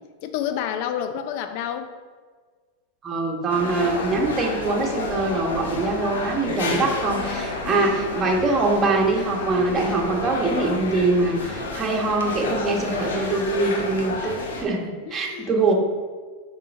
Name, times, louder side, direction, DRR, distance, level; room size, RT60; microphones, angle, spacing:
voice 1, 0.2-1.9 15.1-15.6, left 9 dB, 60° left, 8 dB, 0.5 m, -29 dB
voice 2, 3.0-15.7, right 3 dB, 25° right, 0 dB, 1.2 m, -23 dB
sound 1, 3.5-14.6, left 3 dB, 85° left, 0.9 m, -30 dB
5.5 x 4.1 x 5.2 m, 1.5 s
hypercardioid pair, 115°, 0 cm